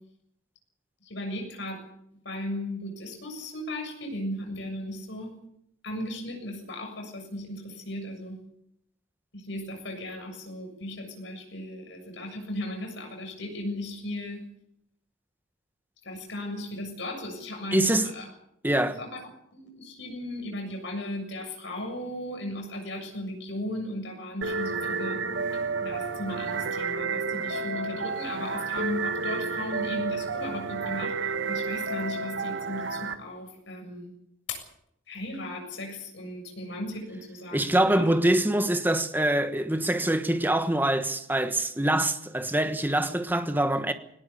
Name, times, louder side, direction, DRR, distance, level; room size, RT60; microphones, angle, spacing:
voice 1, 1.0-1.8 2.2-5.3 5.8-8.4 9.3-14.4 16.0-18.3 18.8-25.2 25.8-34.1 34.5-34.6 35.1-38.1, left 1 dB, 60° left, 7.3 m, -36 dB
voice 2, 17.7-18.0 18.6-19.0 37.5-43.9, right 1 dB, 10° right, 1.3 m, -24 dB
sound 1, 24.4-33.1, right 4 dB, 70° right, 1.5 m, -31 dB
18.5 x 18.5 x 8.4 m
head